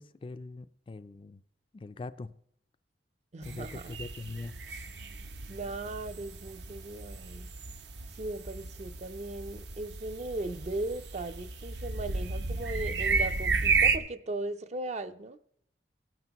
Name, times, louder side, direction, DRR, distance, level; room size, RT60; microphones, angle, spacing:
voice 1, 0.0-1.4 1.7-2.3 3.4-4.5, left 3 dB, 30° left, 0.3 m, -42 dB
voice 2, 3.3-4.0 5.5-7.5 8.1-15.4, right 2 dB, 40° right, 0.5 m, -38 dB
sound 1, 3.4-14.0, right 4 dB, 75° right, 0.7 m, -33 dB
17.0 x 9.1 x 3.0 m
head